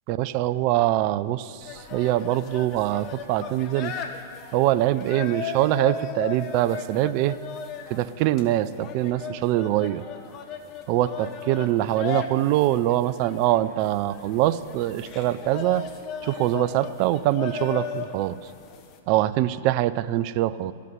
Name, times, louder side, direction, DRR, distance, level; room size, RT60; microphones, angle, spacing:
voice 1, 0.1-1.6 1.9-3.9 4.5-7.4 7.9-10.0 10.9-15.8 16.2-18.3 19.1-20.7, right 14 dB, 45° right, 15 dB, 0.5 m, -23 dB
sound 1, 1.6-19.0, left 7 dB, 35° left, 1.3 m, -37 dB
14.0 x 8.4 x 9.4 m, 2.3 s
hypercardioid pair, 110°, 0 cm